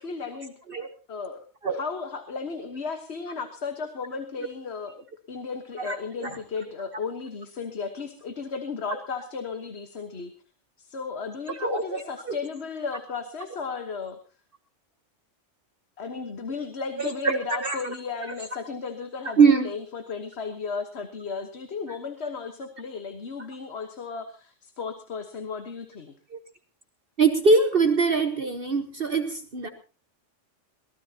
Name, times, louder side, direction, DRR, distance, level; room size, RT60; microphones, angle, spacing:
voice 1, 0.0-0.5 1.1-10.3 10.8-14.2 16.0-26.1, left 5 dB, 60° left, 7 dB, 1.6 m, -35 dB
voice 2, 5.8-6.4 8.9-9.0 11.5-12.4 17.0-18.0 19.4-19.7 26.3-26.4 27.2-29.7, right 4 dB, 50° right, 7 dB, 1.4 m, -23 dB
23.0 x 18.0 x 2.9 m, 0.34 s
omnidirectional pair, 1.3 m